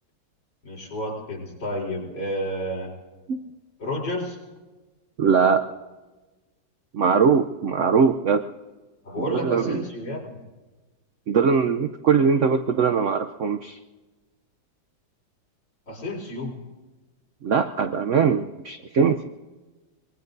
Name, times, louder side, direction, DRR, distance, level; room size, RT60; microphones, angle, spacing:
voice 1, 0.6-2.9 3.8-4.4 9.0-10.4 15.9-16.6, left 1 dB, 65° left, -3 dB, 5.0 m, -31 dB
voice 2, 5.2-5.7 6.9-8.4 9.2-9.8 11.3-13.8 17.4-19.2, right 6 dB, 75° right, 8 dB, 0.7 m, -21 dB
25.0 x 22.0 x 2.7 m, 1.2 s
omnidirectional pair, 2.1 m